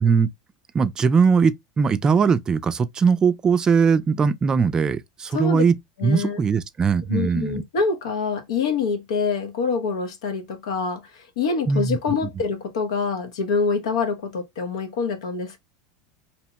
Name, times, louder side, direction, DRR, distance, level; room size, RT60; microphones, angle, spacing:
voice 1, 0.7-5.8 6.0-7.6 11.7-12.0, right 5 dB, 20° right, 0.3 m, -20 dB
voice 2, 5.3-5.6 6.0-6.4 7.1-15.6, left 4 dB, 90° left, 0.8 m, -25 dB
2.8 x 2.1 x 2.8 m
supercardioid pair, 125°, 3 cm